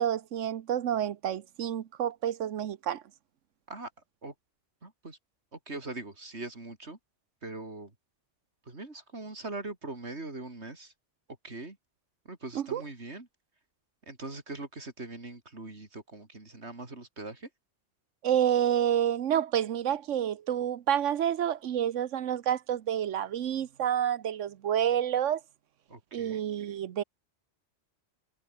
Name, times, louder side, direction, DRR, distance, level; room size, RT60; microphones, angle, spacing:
voice 1, 0.0-3.0 12.5-12.8 18.2-25.4 26.1-27.0, right 10 dB, 90° right, 1.2 m, -29 dB
voice 2, 4.8-5.2 5.5-7.0 7.4-7.9 8.7-10.9 11.4-11.8 12.3-13.3 14.0-17.5 25.9-26.4, right 2 dB, 65° right, 4.0 m, -41 dB
omnidirectional pair, 1.2 m